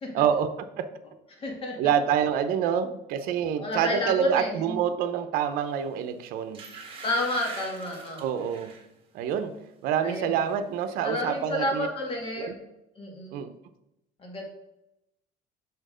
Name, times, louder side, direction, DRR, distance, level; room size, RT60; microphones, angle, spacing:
voice 1, 0.1-0.5 0.8-0.9 1.8-6.6 8.2-8.7 9.1-9.6 9.8-11.9 12.4-12.6 13.3-13.5, right 8 dB, 70° right, 10 dB, 0.7 m, -27 dB
voice 2, 1.4-1.8 3.6-4.8 7.0-8.2 10.0-10.4 11.0-12.5 13.0-13.4 14.2-14.4, left 1 dB, 35° left, 1 dB, 2.0 m, -30 dB
sound 1, 5.8-6.0 6.5-8.9 9.3-9.6 9.9-10.6 10.9-11.0, right 5 dB, 35° right, 1.9 m, -44 dB
6.6 x 4.4 x 5.1 m, 0.86 s
cardioid pair, 135°, 15 cm